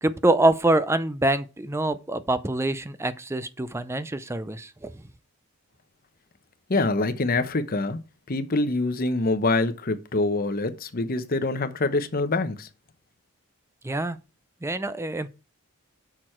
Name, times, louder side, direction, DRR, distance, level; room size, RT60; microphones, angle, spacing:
voice 1, 0.0-5.0 13.8-14.2 14.6-15.3, right 2 dB, 10° right, 0.5 m, -25 dB
voice 2, 6.7-8.0 8.3-12.7, left 2 dB, 40° left, 0.8 m, -25 dB
6.6 x 6.1 x 4.4 m
head